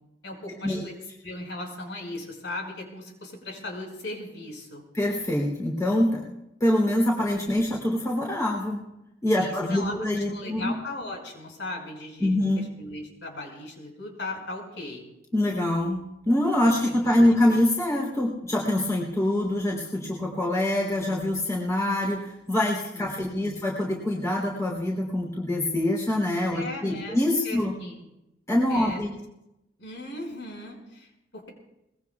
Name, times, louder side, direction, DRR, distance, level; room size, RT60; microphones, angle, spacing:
voice 1, 0.2-0.9 1.2-4.8 9.4-10.0 10.3-15.0 16.9-17.1 22.9-23.7 26.5-27.2 27.4-28.0 28.7-29.0 29.8-31.5, left 2 dB, 80° left, 1 dB, 5.5 m, -38 dB
voice 2, 4.9-6.2 6.6-8.8 9.2-10.7 12.2-12.7 15.3-27.7 28.5-29.1, left 1 dB, 15° left, -2 dB, 3.2 m, -25 dB
24.0 x 21.0 x 2.4 m, 0.90 s
head